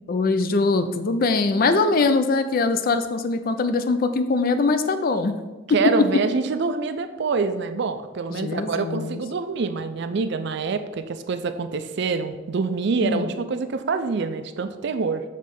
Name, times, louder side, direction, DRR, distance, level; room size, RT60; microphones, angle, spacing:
voice 1, 0.1-5.3 5.7-6.1 8.4-9.2 13.0-13.3, left 3 dB, 50° left, 10 dB, 0.4 m, -22 dB
voice 2, 5.7-15.2, right 4 dB, 60° right, 10 dB, 0.4 m, -26 dB
6.6 x 3.2 x 5.3 m, 1.2 s
head